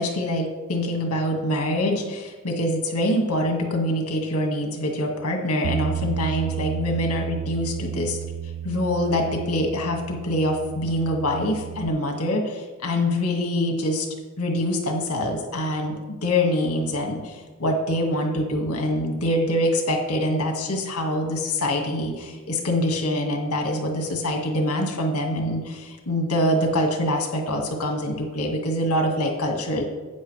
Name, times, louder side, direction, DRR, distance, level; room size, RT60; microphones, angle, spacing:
voice 1, 0.0-8.2 8.6-14.1 14.4-29.8, left 1 dB, 80° left, 2 dB, 2.0 m, -25 dB
Bass guitar, 5.6-11.9, right 10 dB, 85° right, 0.4 m, -32 dB
12.0 x 8.9 x 3.4 m, 1.3 s
head